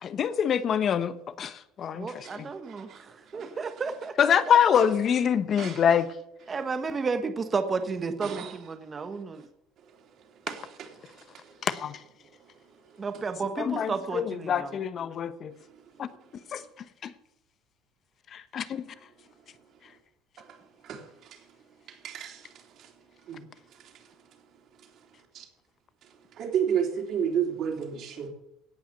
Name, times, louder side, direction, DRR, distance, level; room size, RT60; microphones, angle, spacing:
voice 1, 0.0-2.5 4.2-6.1 11.6-12.0 13.6-15.5 16.0-16.1 16.5-16.6 17.0-17.1 18.3-18.9, left 8 dB, 40° left, 13 dB, 1.0 m, -25 dB
voice 2, 1.9-2.9 3.3-4.2 6.5-9.4 13.0-14.7, right 4 dB, 25° right, 9 dB, 1.2 m, -32 dB
voice 3, 2.7-3.0 3.3-3.5 5.6-5.8 8.2-8.5 10.5-10.6 20.9-21.0 22.0-22.4 23.3-23.4 25.3-25.4 26.4-28.3, right 8 dB, 55° right, 2 dB, 3.4 m, -30 dB
17.5 x 5.8 x 6.8 m, 0.81 s
cardioid pair, 120°, 0 cm